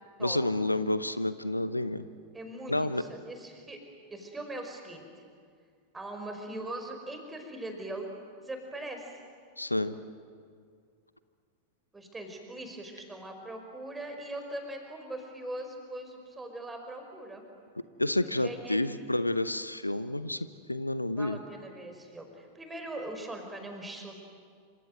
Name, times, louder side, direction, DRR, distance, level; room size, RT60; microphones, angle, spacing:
voice 1, 0.2-2.0 2.7-3.0 9.6-9.9 18.0-21.4, left 1 dB, 85° left, 13 dB, 0.8 m, -29 dB
voice 2, 2.3-3.8 4.1-5.1 5.9-9.2 11.9-17.4 18.4-18.8 21.1-24.1, right 1 dB, 10° right, 4 dB, 5.0 m, -41 dB
27.5 x 26.0 x 7.8 m, 2.2 s
figure-of-eight pair, 90°, 0 cm